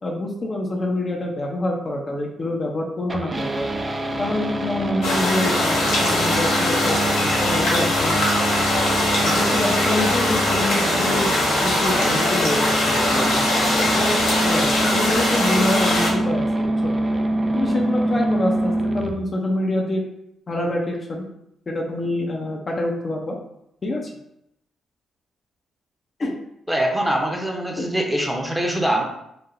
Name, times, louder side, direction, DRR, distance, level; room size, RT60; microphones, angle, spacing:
voice 1, 0.0-3.6 4.2-8.3 9.1-11.3 11.6-13.4 13.8-16.9 17.5-20.0 20.5-21.3 21.7-23.4 23.8-24.1 26.2-26.4 27.8-27.9, left 1 dB, 45° left, 0 dB, 0.5 m, -26 dB
sound 1, 3.1-19.1, right 1 dB, 35° right, 0.4 m, -25 dB
sound 2, 5.0-16.1, left 1 dB, 80° left, 0.8 m, -21 dB
voice 2, 26.7-29.0, right 1 dB, 10° right, 0 dB, 0.8 m, -23 dB
3.1 x 2.1 x 2.5 m, 0.78 s
hypercardioid pair, 45°, 0 cm